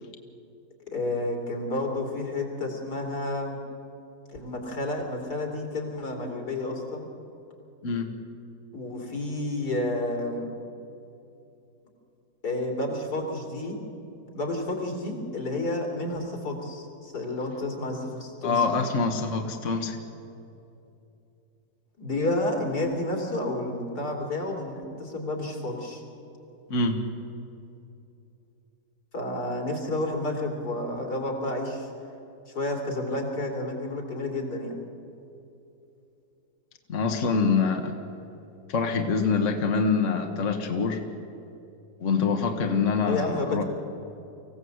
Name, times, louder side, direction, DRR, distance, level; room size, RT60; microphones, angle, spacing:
voice 1, 0.9-3.6 4.3-7.1 8.7-10.5 12.4-13.8 14.3-18.6 22.0-26.0 29.1-31.9 32.5-34.8 43.1-43.6, left 2 dB, 85° left, 1 dB, 3.8 m, -30 dB
voice 2, 18.4-20.0 26.7-27.0 36.9-37.9 38.7-41.0 42.0-43.6, left 4 dB, 50° left, 4 dB, 1.6 m, -25 dB
24.5 x 16.0 x 8.0 m, 2.7 s
omnidirectional pair, 1.7 m